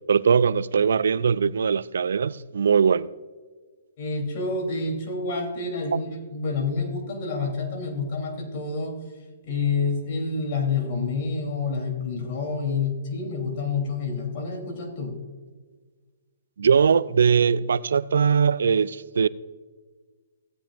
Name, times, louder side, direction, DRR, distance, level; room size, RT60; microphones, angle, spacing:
voice 1, 0.1-3.1 16.6-19.3, right 6 dB, 75° right, 0.4 m, -21 dB
voice 2, 4.0-9.0 9.4-15.1, left 4 dB, 45° left, 3.3 m, -28 dB
16.5 x 8.9 x 2.5 m
hypercardioid pair, 145°, 0 cm